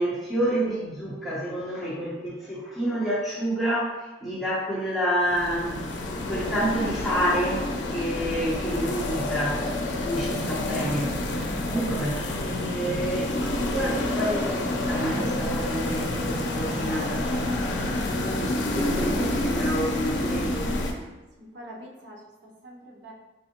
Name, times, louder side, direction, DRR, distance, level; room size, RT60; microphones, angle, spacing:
voice 1, 0.0-5.8 6.2-9.6 10.0-11.4 11.7-17.3 18.1-20.7, equal, ahead, -8 dB, 0.9 m, -29 dB
Desert Approach, 5.2-20.9, left 1 dB, 85° left, 0.5 m, -28 dB
voice 2, 21.4-23.1, right 1 dB, 75° right, -2 dB, 0.6 m, -45 dB
4.4 x 2.1 x 2.8 m, 1.1 s
head